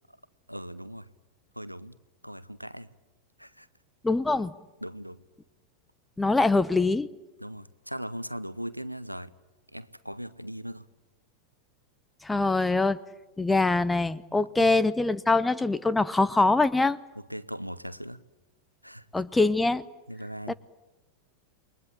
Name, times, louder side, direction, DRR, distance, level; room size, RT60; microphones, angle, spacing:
voice 1, 0.5-1.1 1.6-1.9 2.2-2.9 3.4-3.7 4.8-5.2 7.4-9.3 9.7-10.8 14.6-14.7 17.2-18.2 18.8-19.1 20.1-20.5, equal, 90° right, 0.9 m, -39 dB
voice 2, 4.0-4.5 6.2-7.1 12.2-13.0 13.4-17.0 19.1-19.8 20.5-20.6, left 3 dB, 10° left, 0.9 m, -23 dB
28.5 x 22.0 x 8.8 m
figure-of-eight pair, 90°, 0 cm